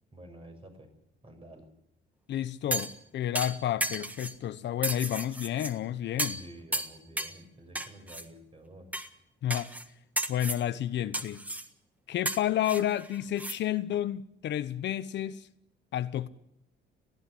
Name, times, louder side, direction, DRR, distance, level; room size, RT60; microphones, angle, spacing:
voice 1, 0.1-0.9 1.2-1.6 6.3-8.9, right 1 dB, 30° right, 6.7 m, -50 dB
voice 2, 2.3-6.4 9.4-9.7 10.3-11.4 12.1-15.5 15.9-16.3, left 11 dB, 65° left, 1.0 m, -31 dB
sound 1, 2.7-3.0 3.4-4.4 4.8-5.7 6.2-6.5 6.7-7.4 7.8-8.2 8.9-9.1 9.5-9.9 10.2-10.6 11.1-11.7 12.3-13.6 13.9-14.0, right 1 dB, 5° right, 1.5 m, -34 dB
19.5 x 14.5 x 10.0 m
cardioid pair, 95°, 20 cm